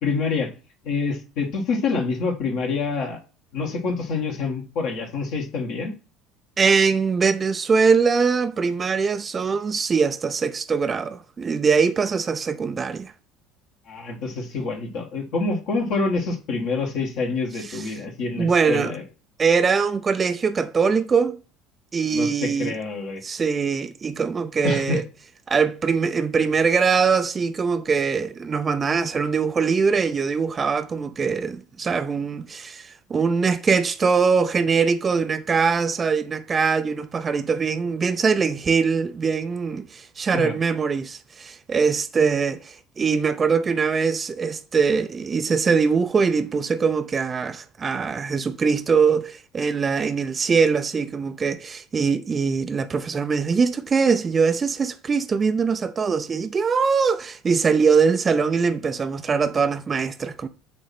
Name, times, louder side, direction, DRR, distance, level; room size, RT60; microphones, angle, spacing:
voice 1, 0.0-0.5 0.8-3.2 3.5-5.9 13.9-19.0 22.1-23.2 24.6-25.0 40.3-40.5, left 4 dB, 55° left, 1.6 m, -26 dB
voice 2, 6.6-13.1 17.7-18.0 18.4-18.9 19.4-21.4 21.9-22.8 23.2-25.0 25.5-60.5, right 5 dB, 30° right, 0.6 m, -22 dB
8.5 x 3.1 x 5.9 m
figure-of-eight pair, 65°, 0 cm